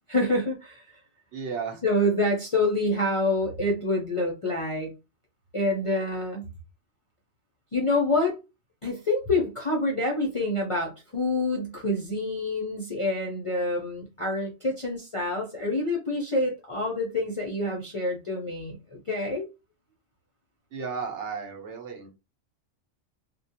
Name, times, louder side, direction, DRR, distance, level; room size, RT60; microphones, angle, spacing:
voice 1, 0.1-1.0 1.8-4.9 5.5-6.5 7.7-8.4 8.8-19.5, left 2 dB, 45° left, -1 dB, 0.4 m, -27 dB
voice 2, 1.3-1.8 20.7-22.1, right 5 dB, 75° right, 3 dB, 1.0 m, -34 dB
2.3 x 2.1 x 2.7 m, 0.27 s
omnidirectional pair, 1.2 m